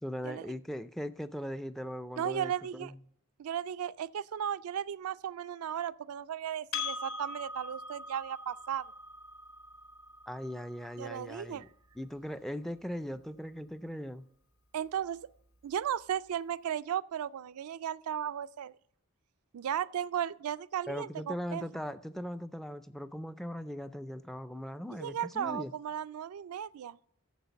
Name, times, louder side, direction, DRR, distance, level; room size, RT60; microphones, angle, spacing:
voice 1, 0.0-3.0 10.3-11.7 12.0-14.3 20.9-25.7, equal, ahead, 0.3 m, -39 dB
voice 2, 2.2-2.9 3.4-8.8 11.0-11.7 14.7-15.2 15.6-18.7 19.5-21.6 25.0-27.0, right 9 dB, 75° right, 0.3 m, -35 dB
Percussion, 6.7-11.5, left 4 dB, 65° left, 1.6 m, -42 dB
8.2 x 7.1 x 6.8 m
head